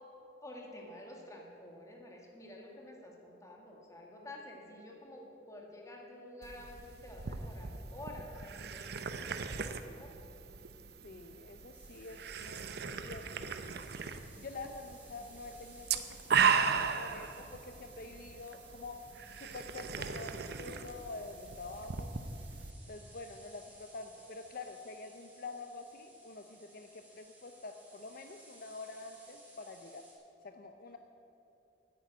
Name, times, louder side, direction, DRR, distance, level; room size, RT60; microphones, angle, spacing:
voice 1, 0.4-10.3, left 1 dB, 20° left, -1 dB, 2.1 m, -50 dB
sound 1, 6.4-22.7, right 6 dB, 60° right, 0.7 m, -37 dB
voice 2, 11.0-12.7 13.0-13.5 14.4-19.1 19.3-22.1 22.9-30.1 30.4-31.0, left 3 dB, 55° left, 6 dB, 0.6 m, -47 dB
sound 2, 11.7-30.1, right 1 dB, 10° right, 3.2 m, -60 dB
10.5 x 9.3 x 9.2 m, 2.9 s
head